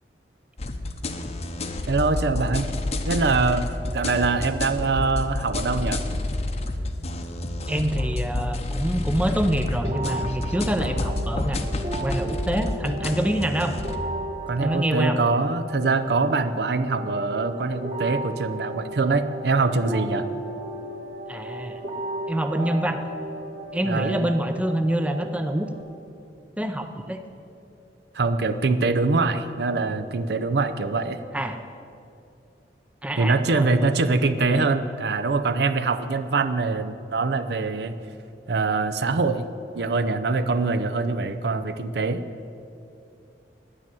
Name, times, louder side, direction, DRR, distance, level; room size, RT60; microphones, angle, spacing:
sound 1, 0.6-14.0, left 2 dB, 35° left, 0.7 m, -29 dB
voice 1, 1.9-2.7 3.0-3.7 3.9-6.0 14.5-20.3 23.8-24.3 28.1-31.2 33.2-38.0 38.5-39.5 39.7-42.2, right 3 dB, 65° right, 11 dB, 0.5 m, -24 dB
voice 2, 7.7-13.8 14.6-15.2 21.3-21.8 22.3-23.1 23.7-25.7 26.6-27.2 31.3-31.6 33.0-33.8 34.4-34.7, right 1 dB, 5° right, 7 dB, 0.5 m, -26 dB
sound 2, 9.8-25.8, right 1 dB, 40° right, 1.5 m, -35 dB
9.9 x 9.7 x 7.6 m, 2.6 s
head